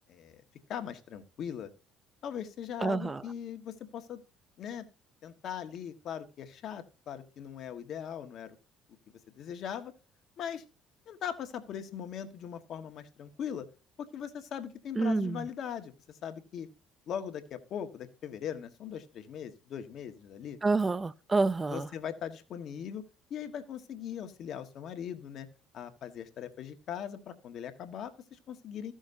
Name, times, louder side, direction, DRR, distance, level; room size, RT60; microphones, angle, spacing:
voice 1, 0.1-0.4 0.7-1.7 2.2-4.2 4.6-4.9 5.2-8.6 9.3-9.9 10.4-10.6 11.1-13.7 14.0-16.7 17.1-20.6 21.7-23.0 23.3-25.5 25.7-28.9, left 8 dB, 60° left, 1.6 m, -40 dB
voice 2, 2.8-3.2 15.0-15.5 20.6-21.9, right 3 dB, 25° right, 0.6 m, -28 dB
15.5 x 6.4 x 2.7 m
hypercardioid pair, 65°, 0 cm